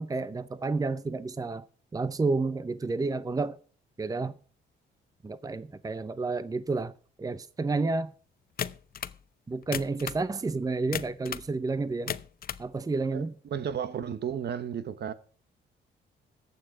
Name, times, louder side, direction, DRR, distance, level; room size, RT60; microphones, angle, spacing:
voice 1, 0.0-1.7 1.9-3.6 4.0-4.4 5.2-6.9 7.2-8.1 9.5-12.2 12.6-13.3, right 3 dB, 20° right, 0.7 m, -30 dB
sound 1, 8.6-9.2 9.6-10.3 10.9-11.5 11.9-12.7, left 9 dB, 50° left, 0.7 m, -35 dB
voice 2, 13.5-15.1, right 8 dB, 55° right, 1.2 m, -33 dB
14.5 x 9.0 x 4.9 m
cardioid pair, 90°, 20 cm